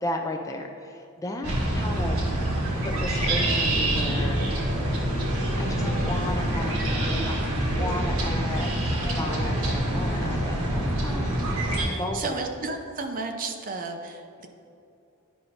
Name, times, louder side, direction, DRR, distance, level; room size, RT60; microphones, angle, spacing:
voice 1, 0.0-2.2 2.8-4.4 5.6-7.5 7.8-12.4, left 1 dB, 15° left, 2 dB, 0.3 m, -35 dB
sound 1, 1.4-11.8, right 1 dB, 80° right, 1.3 m, -26 dB
voice 2, 11.9-14.5, right 3 dB, 40° right, 4 dB, 0.6 m, -33 dB
10.5 x 5.3 x 2.8 m, 2.7 s
head